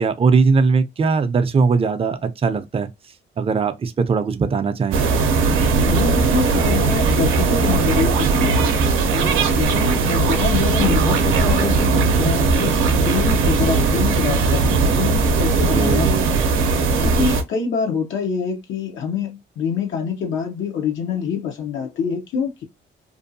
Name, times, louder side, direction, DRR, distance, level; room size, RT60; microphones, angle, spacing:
voice 1, 0.0-2.9 3.4-5.0 15.7-16.3, right 4 dB, 30° right, 0.5 m, -19 dB
sound 1, 4.9-17.4, right 4 dB, 85° right, 0.6 m, -18 dB
voice 2, 5.9-8.7 9.1-16.5 17.0-22.6, left 6 dB, 75° left, 0.7 m, -25 dB
2.6 x 2.3 x 2.6 m
cardioid pair, 90°, 20 cm